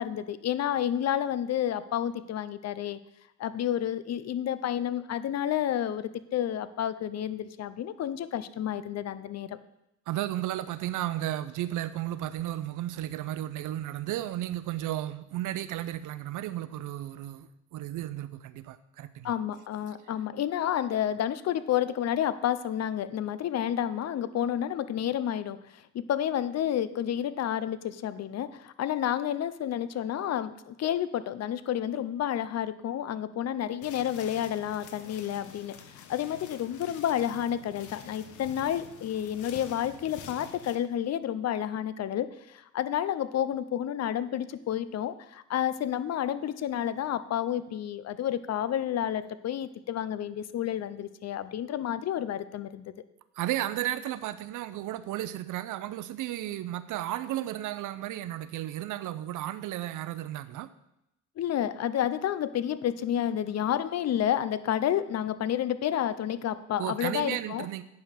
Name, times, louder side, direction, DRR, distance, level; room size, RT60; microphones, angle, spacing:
voice 1, 0.0-3.0 3.4-9.6 19.2-52.9 61.4-67.7, left 10 dB, 60° left, 0.7 m, -30 dB
voice 2, 10.1-19.3 53.4-60.7 66.8-67.8, right 13 dB, 85° right, 0.7 m, -34 dB
sound 1, 33.8-40.8, left 7 dB, 80° left, 1.1 m, -48 dB
9.3 x 5.6 x 6.5 m
cardioid pair, 90°, 30 cm